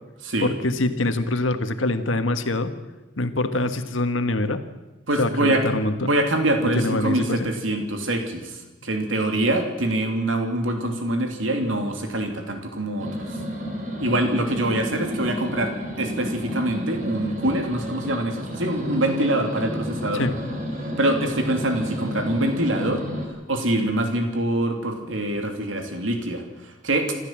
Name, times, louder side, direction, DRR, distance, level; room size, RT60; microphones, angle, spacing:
voice 1, 0.4-2.7 3.2-4.6 5.2-6.1 6.8-7.5 20.1-20.3, left 2 dB, 85° left, 9 dB, 1.6 m, -24 dB
voice 2, 5.1-5.6 6.0-13.4 14.0-20.2 21.0-23.0 23.5-27.2, right 1 dB, 85° right, 4 dB, 3.0 m, -24 dB
sound 1, 13.0-23.3, equal, 40° right, 4.5 m, -31 dB
27.0 x 13.5 x 7.6 m, 1.1 s
head